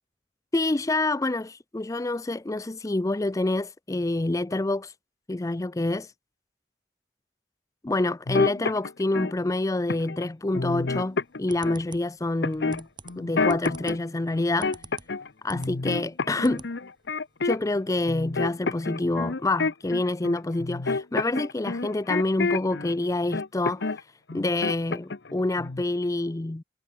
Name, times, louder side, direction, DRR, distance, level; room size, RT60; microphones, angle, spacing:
voice 1, 0.5-4.9 5.3-6.1 7.8-12.9 13.2-14.8 15.4-16.7 17.4-24.0 24.3-26.6, left 2 dB, 20° left, 0.5 m, -27 dB
sound 1, 8.3-9.3 9.9-10.2 10.5-11.8 12.4-14.0 14.3-15.3 15.5-17.8 18.1-22.9 23.3-24.0 24.3-25.3 25.6-25.8, left 3 dB, 80° left, 0.9 m, -29 dB
sound 2, 11.1-15.8 16.1-16.7 17.0-17.1 17.4-17.5, right 4 dB, 25° right, 2.2 m, -46 dB
head